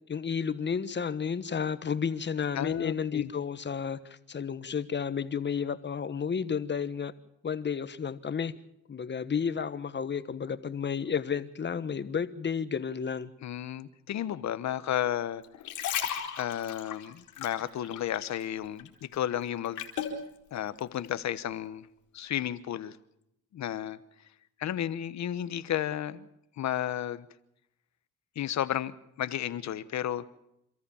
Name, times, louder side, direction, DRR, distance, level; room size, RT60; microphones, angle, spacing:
voice 1, 0.1-7.1 7.4-8.5 8.9-13.3, left 6 dB, 35° left, 1.3 m, -32 dB
voice 2, 2.5-3.3 13.4-15.4 16.3-19.8 20.5-21.9 22.1-23.0 23.5-24.0 24.6-26.3 26.6-27.3 28.3-30.2, left 11 dB, 65° left, 1.2 m, -33 dB
sound 1, 15.4-18.5 18.8-20.2 20.8-21.0, left 9 dB, 85° left, 3.9 m, -35 dB
28.0 x 14.0 x 7.2 m
cardioid pair, 90°, 30 cm